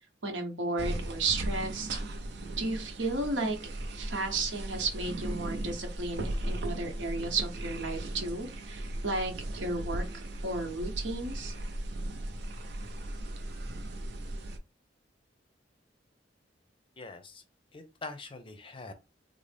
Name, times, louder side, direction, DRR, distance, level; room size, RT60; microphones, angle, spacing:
voice 1, 0.2-2.0 2.6-3.6 3.9-11.5, right 3 dB, 85° right, 0.9 m, -33 dB
sound 1, 0.8-14.6, right 1 dB, 65° right, 0.6 m, -37 dB
voice 2, 17.0-17.4 17.7-18.9, left 3 dB, 30° left, 0.5 m, -43 dB
3.8 x 2.0 x 3.3 m
head